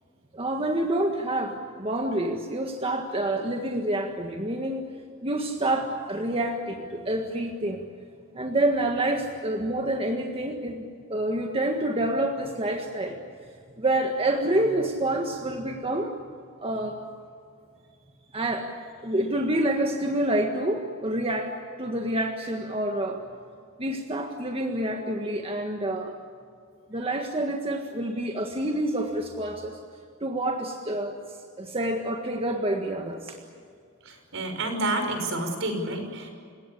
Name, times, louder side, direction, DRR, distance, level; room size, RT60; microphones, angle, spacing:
voice 1, 0.3-4.9 5.2-7.8 8.3-13.2 13.8-16.1 16.6-17.0 18.3-18.7 19.0-21.5 21.8-23.2 23.8-26.1 26.9-29.8 30.2-31.1 31.6-33.4, right 1 dB, 25° right, 3 dB, 1.7 m, -27 dB
voice 2, 34.0-36.3, right 2 dB, 65° right, 5 dB, 5.8 m, -29 dB
29.5 x 18.0 x 8.4 m, 2.2 s
head